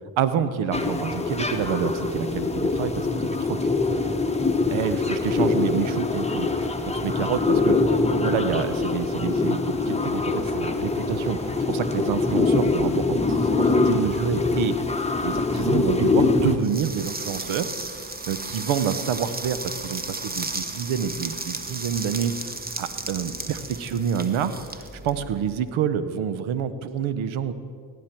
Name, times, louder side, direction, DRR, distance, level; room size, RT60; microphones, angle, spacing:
voice 1, 0.2-3.6 4.7-7.8 8.1-14.7 15.2-22.3 22.8-27.5, right 8 dB, 80° right, 13 dB, 0.8 m, -28 dB
sound 1, 0.7-16.6, left 3 dB, 15° left, 1.1 m, -24 dB
sound 2, 16.6-25.6, right 2 dB, 20° right, 1.0 m, -34 dB
17.5 x 9.4 x 4.4 m, 2.2 s
supercardioid pair, 50°, 48 cm